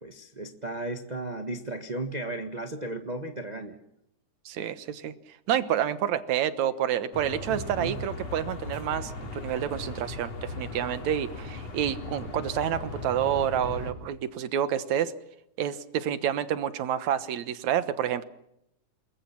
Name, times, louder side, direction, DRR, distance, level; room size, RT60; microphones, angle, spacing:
voice 1, 0.0-3.8 7.5-8.0, right 2 dB, 35° right, 5 dB, 0.6 m, -35 dB
voice 2, 4.5-5.1 5.5-15.1 15.6-18.2, right 10 dB, 65° right, 12 dB, 2.4 m, -29 dB
sound 1, 7.1-13.9, left 3 dB, 55° left, 4.5 m, -38 dB
28.5 x 21.5 x 5.9 m, 0.79 s
omnidirectional pair, 3.6 m